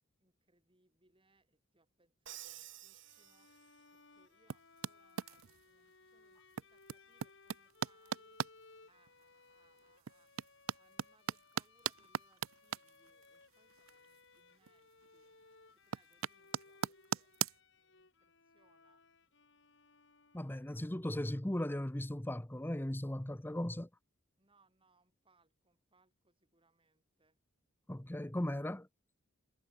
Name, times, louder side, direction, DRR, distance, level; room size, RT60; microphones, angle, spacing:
voice 1, 0.2-8.4 8.8-15.4 15.7-19.0 24.4-27.4, right 2 dB, 25° right, 7.0 m, -75 dB
Crash cymbal, 2.3-4.0, right 13 dB, 60° right, 1.9 m, -52 dB
Bowed string instrument, 3.0-20.9, left 3 dB, 60° left, 3.8 m, -64 dB
sound 1, 4.5-5.7 6.5-8.5 9.1-9.2 9.8-14.4 14.6-15.2 15.5-17.6, right 8 dB, 80° right, 0.5 m, -39 dB
voice 2, 20.3-23.9 27.9-28.9, left 1 dB, 10° left, 0.7 m, -37 dB
head